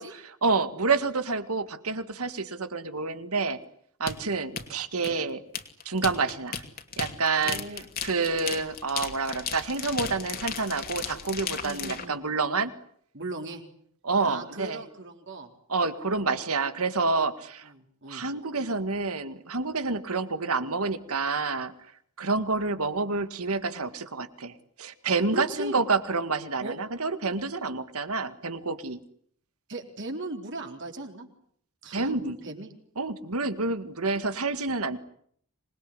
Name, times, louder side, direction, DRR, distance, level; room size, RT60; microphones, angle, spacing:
voice 1, 0.0-3.6 4.0-5.4 5.9-6.6 7.0-7.6 8.0-12.7 14.0-14.8 15.7-17.7 18.1-21.7 22.2-29.0 31.9-32.4 33.0-35.0, right 3 dB, 75° right, 11 dB, 1.9 m, -28 dB
sound 1, 4.1-12.0, left 7 dB, 40° left, 2.7 m, -35 dB
voice 2, 7.4-7.9 11.6-12.2 13.1-13.6 14.2-15.5 17.7-18.3 25.3-25.8 26.6-26.8 29.7-31.3 31.8-32.7, right 2 dB, 55° right, 3 dB, 4.0 m, -38 dB
26.0 x 21.0 x 10.0 m, 0.66 s
head